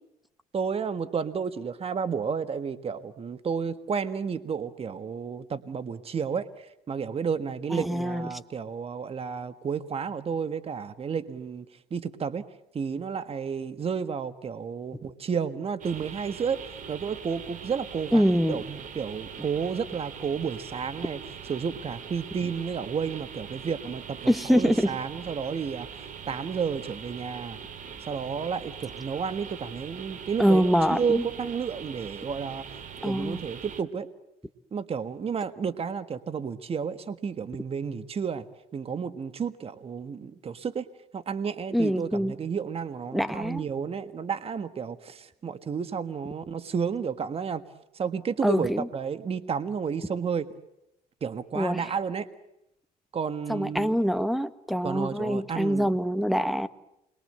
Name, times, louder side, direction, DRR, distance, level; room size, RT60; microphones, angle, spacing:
voice 1, 0.5-12.4 12.7-21.2 21.5-27.6 28.0-32.6 33.0-34.1 34.7-38.5 38.7-40.8 41.1-47.6 47.9-50.5 51.2-52.3 53.1-53.9 54.8-55.9, right 6 dB, 35° right, 11 dB, 1.6 m, -31 dB
voice 2, 7.7-8.3 18.1-18.6 24.3-24.9 30.4-31.2 33.0-33.4 41.7-42.3 43.1-43.7 48.4-48.9 51.5-51.9 53.5-56.7, equal, ahead, 13 dB, 1.5 m, -24 dB
sound 1, 15.8-33.8, right 7 dB, 50° right, 2.5 m, -42 dB
29.0 x 22.5 x 7.9 m, 0.83 s
cardioid pair, 110°, 17 cm